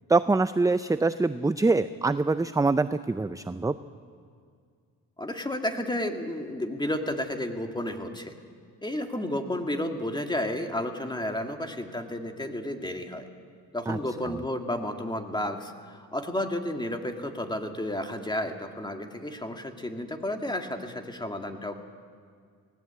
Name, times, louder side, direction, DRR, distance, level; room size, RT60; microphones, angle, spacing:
voice 1, 0.1-3.8 13.9-14.0, right 3 dB, 10° right, 12 dB, 0.5 m, -24 dB
voice 2, 5.2-8.3 8.8-13.3 13.7-21.8, left 1 dB, 10° left, 4 dB, 2.3 m, -32 dB
19.0 x 18.5 x 8.4 m, 2.1 s
cardioid pair, 75°, 38 cm